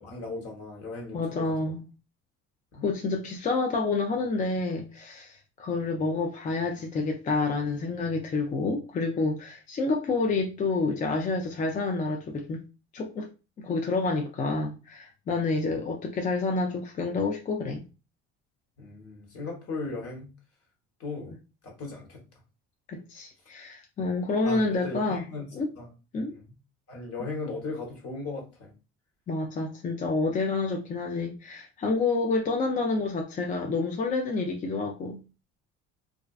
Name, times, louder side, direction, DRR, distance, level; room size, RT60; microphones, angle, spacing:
voice 1, 0.0-1.7 2.7-2.8 18.8-20.3 21.0-21.3 21.6-22.2 24.4-25.5 25.8-25.9 26.3-26.4 26.9-28.7, left 3 dB, 50° left, 1.2 m, -37 dB
voice 2, 1.1-1.8 2.8-12.6 12.9-13.3 13.6-17.8 22.9-25.3 25.5-25.7 26.1-26.3 29.3-35.2, left 3 dB, 25° left, 0.4 m, -28 dB
2.4 x 2.1 x 2.3 m
supercardioid pair, 85°, 31 cm